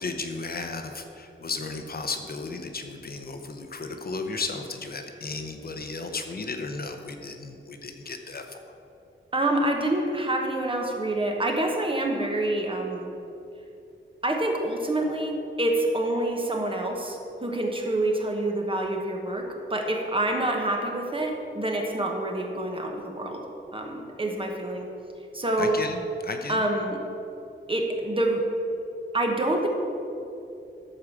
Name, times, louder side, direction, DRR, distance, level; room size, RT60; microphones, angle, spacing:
voice 1, 0.0-8.6 25.6-26.6, left 3 dB, 50° left, 5 dB, 0.7 m, -34 dB
voice 2, 9.3-13.1 14.2-23.4 23.7-24.9 25.3-25.8 26.5-27.0 27.7-28.4 29.1-29.7, right 1 dB, 25° right, 1 dB, 1.2 m, -27 dB
13.0 x 4.8 x 7.2 m, 2.8 s
wide cardioid pair, 165°, 20 cm